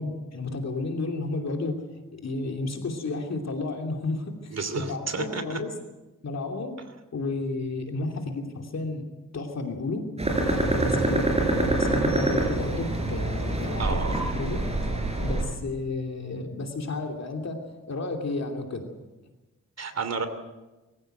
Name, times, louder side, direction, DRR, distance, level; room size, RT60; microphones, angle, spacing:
voice 1, 0.0-1.8 2.1-5.7 6.2-6.8 7.1-9.0 9.3-10.1 10.5-14.0 14.3-15.0 15.2-18.9, left 3 dB, 50° left, 3 dB, 2.9 m, -32 dB
voice 2, 4.5-5.6 13.8-14.1 19.8-20.3, right 4 dB, 50° right, 9 dB, 2.9 m, -31 dB
sound 1, 10.2-15.4, right 2 dB, 20° right, 4.9 m, -25 dB
24.0 x 15.5 x 7.9 m, 1.1 s
wide cardioid pair, 115°, 33 cm